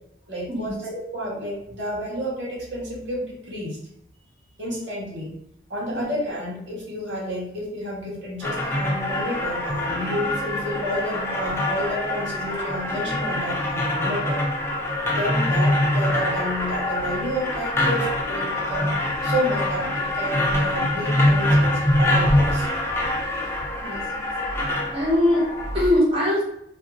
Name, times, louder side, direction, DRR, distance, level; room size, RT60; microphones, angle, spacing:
voice 1, 0.3-3.8 4.6-5.3 5.7-14.4 15.1-18.9 19.2-22.7, equal, 85° right, -4 dB, 1.3 m, -30 dB
sound 1, 8.4-25.9, left 1 dB, 15° left, 0.5 m, -24 dB
voice 2, 23.8-24.3 24.9-26.4, left 1 dB, 30° right, -5 dB, 1.1 m, -22 dB
2.7 x 2.6 x 3.5 m, 0.75 s
head